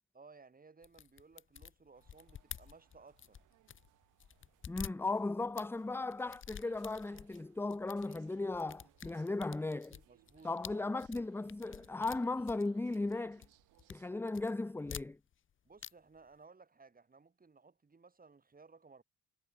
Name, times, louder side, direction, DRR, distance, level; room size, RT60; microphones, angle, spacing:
voice 1, 0.1-3.4 10.1-10.9 15.6-19.0, right 4 dB, 30° right, 6.7 m, -59 dB
sound 1, 0.8-3.9 4.2-5.7 6.1-7.4 7.7-8.2 8.5-13.1 13.4-14.0 14.3-15.5 15.8-16.2, left 8 dB, 40° left, 0.9 m, -49 dB
sound 2, 1.9-14.1, right 15 dB, 90° right, 5.9 m, -68 dB
voice 2, 4.7-10.0 10.4-13.4 13.9-15.2, left 2 dB, 10° left, 0.5 m, -36 dB
cardioid pair, 90°, 30 cm